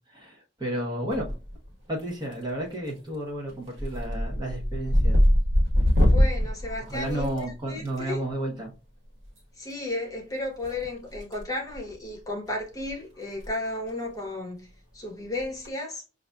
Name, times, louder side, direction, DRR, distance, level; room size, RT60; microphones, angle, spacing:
voice 1, 0.1-1.3 1.9-5.2 6.9-8.7, right 1 dB, 20° right, 0.9 m, -32 dB
sound 1, 1.1-1.7 2.0-2.5 2.9-3.2 3.5-7.9 9.3-9.4 10.6-11.4 11.7-11.9 12.5-12.6 12.8-12.9 13.3-13.5 13.8-13.9 15.4-15.7, equal, 70° right, 1.4 m, -23 dB
voice 2, 6.1-8.2 9.6-14.7 14.9-16.0, left 2 dB, 20° left, 1.0 m, -34 dB
5.8 x 2.5 x 2.2 m
head